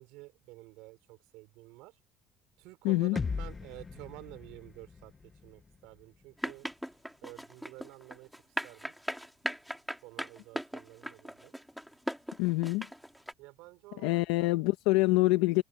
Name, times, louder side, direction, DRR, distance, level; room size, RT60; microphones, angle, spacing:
voice 1, 0.0-2.0 2.6-5.1 5.4-6.7 7.2-8.3 8.6-8.9 10.0-11.5 13.4-14.6, right 22 dB, 80° right, 5.3 m, -50 dB
voice 2, 2.8-3.2 12.4-12.9 14.0-15.6, left 20 dB, 90° left, 1.2 m, -26 dB
sound 1, 3.2-7.1, left 4 dB, 25° left, 1.0 m, -40 dB
sound 2, 6.4-13.3, equal, ahead, 2.4 m, -38 dB
cardioid pair, 105°, 0 cm